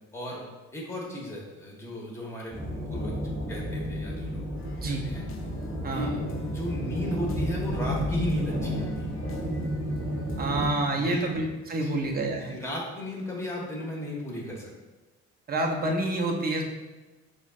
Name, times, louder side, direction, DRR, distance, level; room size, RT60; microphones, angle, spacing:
voice 1, 0.1-0.4 0.7-3.2 3.5-4.4 4.8-5.2 5.9-9.1 10.9-11.3 11.7-12.0 12.4-14.7, left 1 dB, 10° left, -2 dB, 1.1 m, -35 dB
sound 1, 2.5-10.7, equal, 10° right, 1.2 m, -32 dB
sound 2, 4.6-10.7, left 2 dB, 45° left, 0.5 m, -42 dB
voice 2, 10.4-12.6 15.5-16.6, right 2 dB, 30° right, 1 dB, 0.6 m, -28 dB
6.0 x 2.1 x 2.4 m, 1.2 s
cardioid pair, 90°, 30 cm